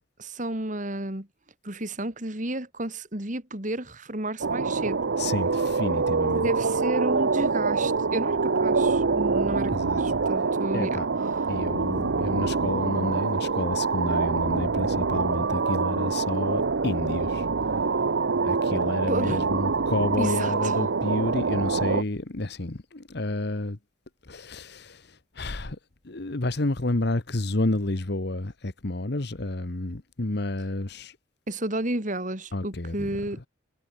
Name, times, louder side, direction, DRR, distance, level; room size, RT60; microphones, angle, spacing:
voice 1, 0.2-1.3 1.6-5.0 6.3-11.0 19.1-19.5 20.2-20.8 31.5-33.5, right 1 dB, 40° right, 3.1 m, -32 dB
sound 1, 4.4-22.0, right 4 dB, 65° right, 0.7 m, -25 dB
voice 2, 5.2-6.5 9.7-10.0 10.7-11.1 11.5-17.4 18.4-23.8 24.3-25.0 25.4-25.8 26.0-31.1 32.5-33.1, left 2 dB, 55° left, 1.2 m, -30 dB
head